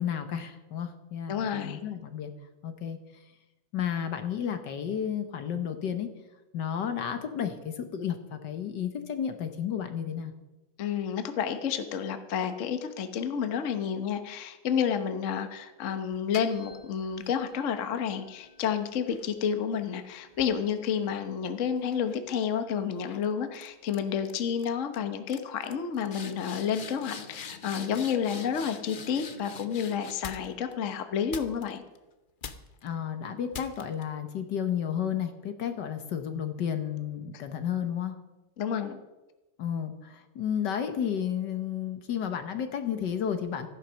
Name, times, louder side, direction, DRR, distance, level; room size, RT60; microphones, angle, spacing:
voice 1, 0.0-2.3 2.6-3.0 3.7-6.1 6.5-10.3 32.8-38.1 39.6-43.7, left 8 dB, 65° left, 8 dB, 1.6 m, -32 dB
voice 2, 1.3-1.8 10.8-31.8 38.6-39.0, left 7 dB, 45° left, 8 dB, 1.1 m, -30 dB
sound 1, 16.1-17.4 18.0-21.5 21.9-22.3 23.0-23.3 23.5-24.0 24.2-24.7 24.9-25.0 25.3-30.7 31.3-32.0 32.4-32.9 33.5-34.0, left 5 dB, 85° left, 0.4 m, -45 dB
14.5 x 10.5 x 6.2 m, 1.1 s
omnidirectional pair, 2.2 m